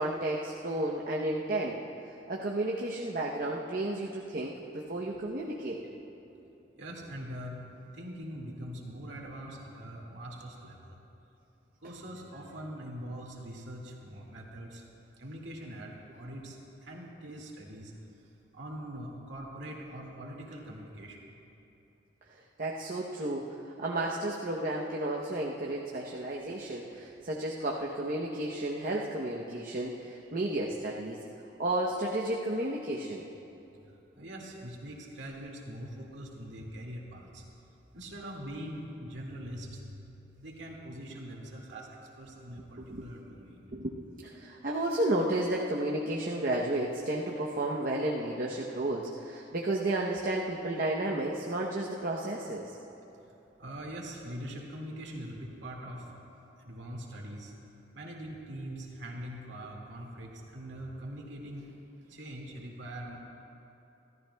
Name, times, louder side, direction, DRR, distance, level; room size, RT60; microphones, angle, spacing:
voice 1, 0.0-1.8 2.3-5.8 22.3-31.2 31.6-33.2 42.8-43.0 43.7-52.7, right 1 dB, 50° right, -2 dB, 0.8 m, -32 dB
voice 2, 6.8-7.6 7.9-11.0 11.8-14.8 15.2-16.6 16.8-17.9 18.5-21.2 34.1-37.4 37.9-40.1 40.4-43.6 53.6-56.1 56.6-57.5 57.9-61.7 62.0-63.2, equal, 85° right, -1 dB, 2.1 m, -42 dB
25.5 x 13.5 x 2.3 m, 2.9 s
head